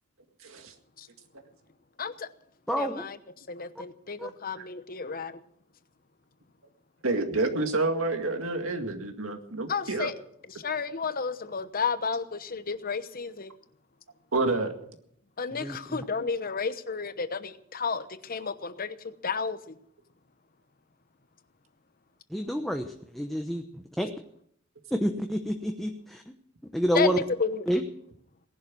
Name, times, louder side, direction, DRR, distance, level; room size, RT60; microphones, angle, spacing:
voice 1, 0.4-0.7 4.6-4.7 7.0-10.1 14.3-14.7, right 2 dB, 75° right, 2.0 m, -28 dB
voice 2, 2.0-2.3 2.7-3.2 3.5-5.4 9.7-10.1 10.6-13.5 15.4-19.6 26.9-27.6, left 5 dB, 45° left, 1.0 m, -32 dB
voice 3, 2.7-3.0 4.2-4.3 15.5-16.0 22.3-24.1 24.9-26.3 26.7-27.2 27.7-27.8, equal, ahead, 0.9 m, -29 dB
18.5 x 11.0 x 6.1 m
head